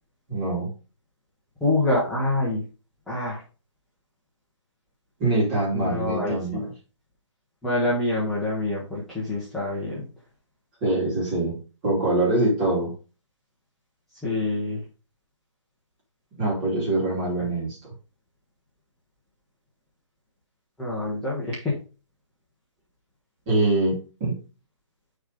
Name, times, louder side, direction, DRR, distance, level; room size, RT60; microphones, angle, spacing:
voice 1, 0.3-0.7 5.2-6.7 10.8-11.6 11.8-12.9 16.4-17.8 23.5-24.4, right 2 dB, 20° right, -3 dB, 2.7 m, -24 dB
voice 2, 1.6-2.6 3.1-3.4 5.7-6.7 7.6-10.1 14.2-14.8 17.4-17.5 20.8-21.7, left 2 dB, ahead, -9 dB, 0.9 m, -26 dB
6.7 x 4.1 x 4.8 m, 0.34 s
hypercardioid pair, 170°, 16 cm